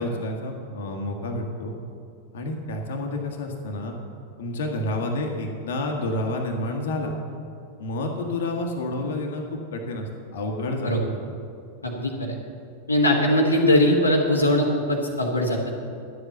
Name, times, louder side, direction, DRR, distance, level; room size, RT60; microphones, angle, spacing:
voice 1, 0.0-1.7 2.3-3.9 4.4-7.1 7.8-10.9, left 1 dB, 60° left, 2 dB, 1.5 m, -29 dB
voice 2, 11.8-12.3 12.9-15.7, left 1 dB, 80° left, -1 dB, 1.4 m, -21 dB
11.0 x 8.0 x 7.1 m, 2.5 s
figure-of-eight pair, 90°, 0 cm